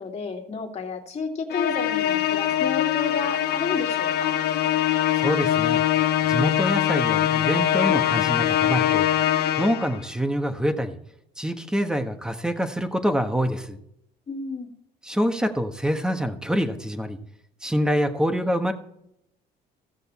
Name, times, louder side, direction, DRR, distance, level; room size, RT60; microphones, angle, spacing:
voice 1, 0.0-4.3 14.3-14.7, left 4 dB, 40° left, 1 dB, 2.3 m, -32 dB
Musical instrument, 1.5-10.0, left 11 dB, 70° left, 0.8 m, -23 dB
voice 2, 5.1-5.8 6.3-9.1 9.6-11.0 11.4-13.8 15.0-17.2 17.6-18.7, equal, 5° right, 6 dB, 1.3 m, -25 dB
15.5 x 6.6 x 4.3 m, 0.76 s
cardioid pair, 110°, 17 cm